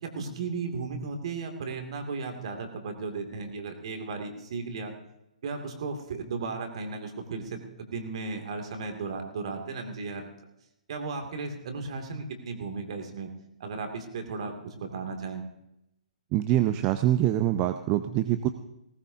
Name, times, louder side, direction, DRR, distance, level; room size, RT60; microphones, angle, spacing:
voice 1, 0.0-4.9 5.4-10.3 10.9-13.3 13.6-15.4, right 4 dB, 50° right, 4 dB, 2.4 m, -35 dB
voice 2, 16.3-18.5, right 13 dB, 25° right, 10 dB, 0.6 m, -24 dB
19.0 x 18.5 x 2.7 m, 0.87 s
figure-of-eight pair, 125°, 4 cm